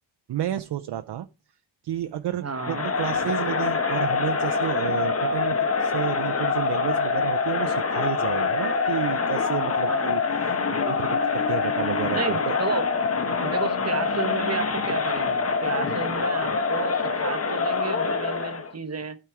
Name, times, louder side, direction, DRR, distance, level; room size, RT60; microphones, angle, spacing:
voice 1, 0.3-1.3 1.8-12.5 13.3-13.4 15.9-16.0, right 12 dB, 60° right, 9 dB, 0.6 m, -31 dB
voice 2, 2.4-2.9 9.9-10.1 12.1-12.8 13.4-19.2, right 5 dB, 35° right, 10 dB, 1.0 m, -32 dB
Crowd, 2.6-18.7, left 5 dB, 30° left, 1.1 m, -25 dB
12.0 x 4.5 x 4.7 m, 0.31 s
cardioid pair, 115°, 47 cm